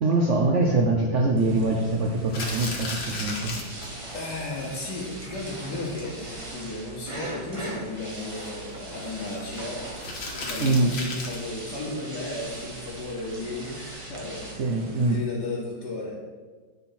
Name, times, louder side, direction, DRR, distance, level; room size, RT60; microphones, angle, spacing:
voice 1, 0.0-3.5 10.6-10.9 14.4-15.2, right 2 dB, 80° right, 2 dB, 0.6 m, -23 dB
sound 1, 1.3-15.2, right 3 dB, 60° right, 1.9 m, -45 dB
sound 2, 2.2-4.3 4.6-4.7 5.0-5.1 5.4-5.5 5.9-6.2 8.2-9.4 10.0-11.5, left 3 dB, 75° left, 2.0 m, -35 dB
sound 3, 2.4-14.5, right 2 dB, 25° right, 0.8 m, -40 dB
voice 2, 4.1-14.7 15.0-16.1, left 2 dB, 55° left, -8 dB, 1.9 m, -35 dB
9.2 x 4.3 x 5.7 m, 1.4 s
omnidirectional pair, 2.3 m